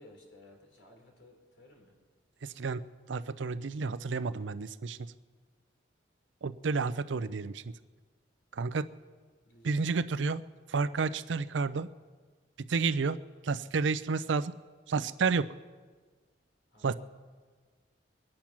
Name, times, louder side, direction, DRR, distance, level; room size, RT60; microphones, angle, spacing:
voice 1, 0.0-1.9 9.5-10.2 16.7-17.0, left 1 dB, 85° left, 1 dB, 3.4 m, -57 dB
voice 2, 2.4-5.1 6.4-7.6 8.5-8.9 9.6-10.4 10.7-11.9 12.7-13.2 13.4-14.5 14.9-15.5 16.8-16.9, right 4 dB, 75° right, 15 dB, 0.5 m, -31 dB
22.5 x 8.8 x 6.0 m, 1.5 s
head